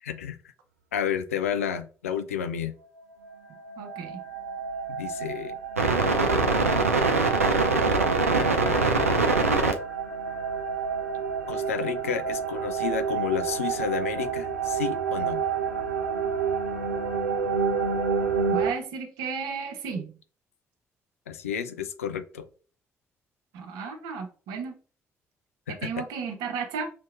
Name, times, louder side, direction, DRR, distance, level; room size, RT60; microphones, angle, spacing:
voice 1, 0.0-0.4 0.9-2.7 5.0-5.6 8.2-9.1 11.5-15.4 21.3-22.5 25.7-25.9, left 7 dB, 80° left, 9 dB, 0.4 m, -31 dB
sound 1, 3.3-3.4 3.7-18.7, right 4 dB, 90° right, 0.4 m, -26 dB
voice 2, 3.8-4.2 18.5-20.2 23.5-24.8 25.7-26.9, right 5 dB, 65° right, 5 dB, 0.8 m, -34 dB
5.8 x 2.8 x 2.4 m, 0.39 s
figure-of-eight pair, 40°, 8 cm